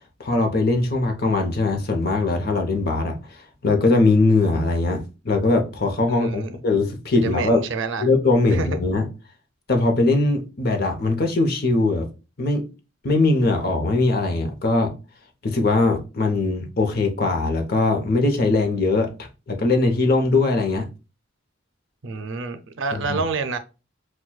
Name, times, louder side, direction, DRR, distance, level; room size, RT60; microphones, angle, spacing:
voice 1, 0.2-3.2 3.6-7.7 8.0-9.1 9.7-12.1 12.4-12.6 13.0-14.9 15.4-19.1 19.5-20.9 22.9-23.2, left 2 dB, 55° left, 0.7 m, -21 dB
voice 2, 6.1-6.6 7.1-8.1 8.5-8.8 22.0-23.6, right 4 dB, 75° right, 0.5 m, -28 dB
6.0 x 2.2 x 2.3 m
head